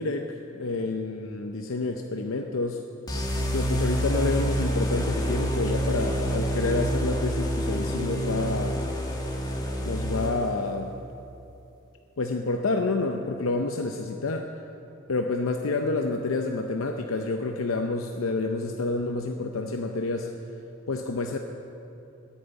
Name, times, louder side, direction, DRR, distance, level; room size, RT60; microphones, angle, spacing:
voice 1, 0.0-2.8 3.5-8.8 9.8-10.9 12.2-14.5 15.1-20.3 20.9-21.4, left 3 dB, 85° left, 4 dB, 0.7 m, -28 dB
sound 1, 3.1-10.7, equal, 20° left, 1.5 m, -27 dB
10.5 x 9.3 x 8.7 m, 2.8 s
head